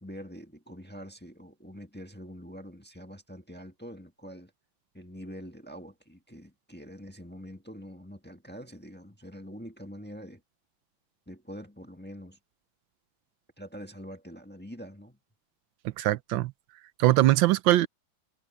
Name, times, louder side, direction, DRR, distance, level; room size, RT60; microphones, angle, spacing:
voice 1, 0.0-4.5 4.9-10.4 11.3-12.4 13.6-15.2, equal, 5° left, 1.2 m, -45 dB
voice 2, 16.0-16.5 17.0-17.9, right 16 dB, 80° right, 1.4 m, -21 dB
omnidirectional pair, 2.1 m